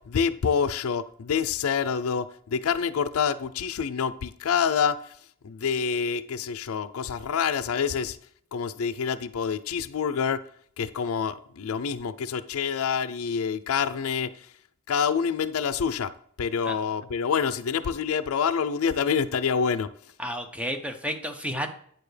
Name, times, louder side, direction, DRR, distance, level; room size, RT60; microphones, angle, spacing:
voice 1, 0.0-5.0 5.4-8.2 8.5-10.4 10.8-14.3 14.9-16.1 16.4-19.9, left 6 dB, 75° left, 0.4 m, -27 dB
voice 2, 20.2-21.7, equal, 5° right, 0.8 m, -31 dB
9.2 x 6.9 x 3.3 m
head